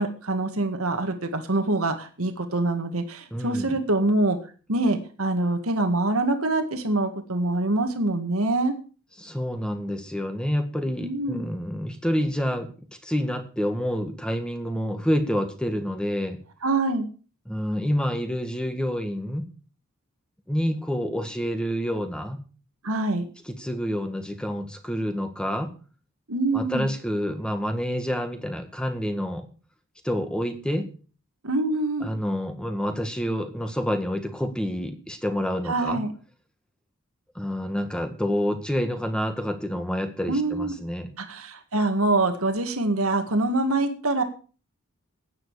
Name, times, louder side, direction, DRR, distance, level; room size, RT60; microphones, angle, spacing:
voice 1, 0.0-4.4 4.7-8.7 11.0-11.5 16.6-17.1 22.8-23.2 26.3-26.9 31.4-32.1 35.7-36.1 40.3-40.7 41.2-44.2, right 2 dB, 80° right, 6 dB, 1.9 m, -25 dB
voice 2, 3.3-3.8 9.2-12.7 13.0-16.4 17.5-19.4 20.5-22.4 23.5-25.7 26.5-29.5 30.0-30.9 32.0-36.0 37.4-41.1, equal, 5° left, 7 dB, 1.7 m, -28 dB
15.0 x 9.6 x 4.9 m, 0.38 s
head